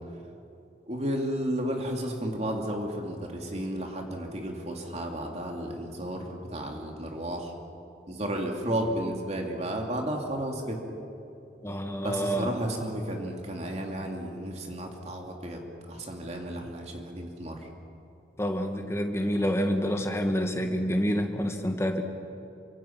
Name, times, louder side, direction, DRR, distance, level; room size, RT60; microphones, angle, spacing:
voice 1, 0.9-7.5 8.1-10.8 12.0-15.6 15.9-17.7, right 1 dB, 35° right, 1 dB, 2.8 m, -33 dB
voice 2, 11.6-12.5 18.4-22.0, equal, 15° left, 4 dB, 1.9 m, -28 dB
29.0 x 25.5 x 6.0 m, 2.8 s
head